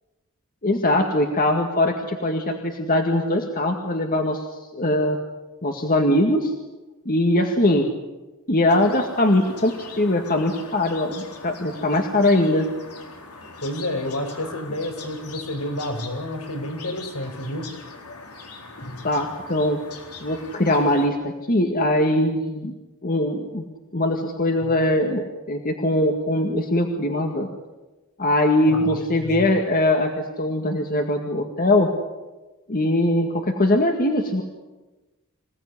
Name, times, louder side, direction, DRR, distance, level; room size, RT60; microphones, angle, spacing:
voice 1, 0.6-4.5 4.7-5.2 5.6-6.5 7.1-7.9 8.5-12.7 19.0-19.8 20.2-22.7 23.0-23.6 23.9-27.5 28.2-31.9 32.7-34.4, left 1 dB, 40° left, 3 dB, 2.0 m, -21 dB
sound 1, 8.7-21.1, left 4 dB, 90° left, 4.1 m, -41 dB
voice 2, 13.6-17.7 18.8-19.0 24.6-24.7 28.7-29.4, left 1 dB, 70° left, 5 dB, 5.3 m, -30 dB
26.5 x 17.5 x 9.8 m, 1.1 s
head